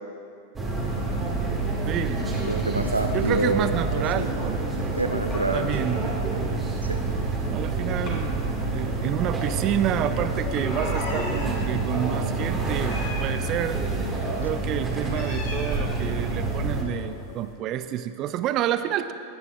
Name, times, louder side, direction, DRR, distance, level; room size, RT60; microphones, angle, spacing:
sound 1, 0.6-17.5, left 2 dB, 30° left, 2.6 m, -38 dB
sound 2, 0.6-16.8, right 3 dB, 15° right, 1.8 m, -28 dB
voice 1, 1.8-2.2 3.1-4.6 5.5-6.0 7.5-13.8 14.4-19.1, right 11 dB, 35° right, 12 dB, 0.5 m, -29 dB
voice 2, 2.4-3.7 4.2-4.3 4.9-6.0 6.8-7.0, right 2 dB, 85° right, 5 dB, 0.7 m, -27 dB
Meow, 10.9-11.6 12.8-13.7 15.0-16.1, left 2 dB, 55° left, 2.0 m, -38 dB
18.5 x 9.5 x 2.4 m, 2.5 s
figure-of-eight pair, 90°, 0 cm